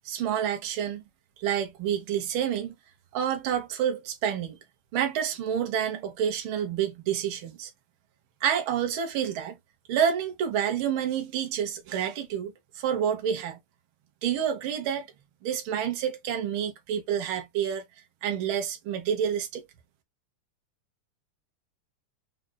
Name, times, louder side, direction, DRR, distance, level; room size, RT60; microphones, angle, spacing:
voice 1, 0.0-1.1 1.4-2.7 3.1-4.6 4.9-7.7 8.4-9.6 9.9-13.6 14.2-15.1 15.4-17.8 18.2-19.6, right 9 dB, 75° right, 1.2 m, -28 dB
5.2 x 2.4 x 2.2 m
omnidirectional pair, 3.6 m